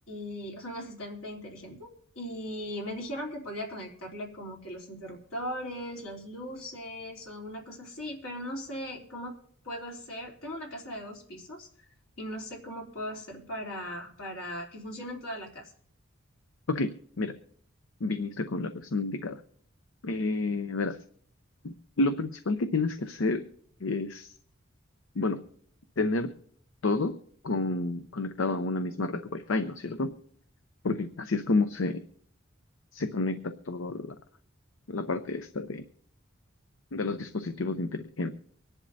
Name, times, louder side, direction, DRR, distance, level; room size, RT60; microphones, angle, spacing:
voice 1, 0.1-9.4 9.6-11.7 12.2-15.7, equal, 90° left, -2 dB, 3.2 m, -38 dB
voice 2, 18.0-19.4 20.0-21.0 21.6-23.5 23.8-24.3 25.2-25.4 26.0-26.3 26.8-27.2 27.4-30.2 30.8-32.0 32.9-34.2 34.9-35.8 36.9-38.3, left 3 dB, 70° left, 9 dB, 0.7 m, -30 dB
24.5 x 10.5 x 2.7 m, 0.62 s
head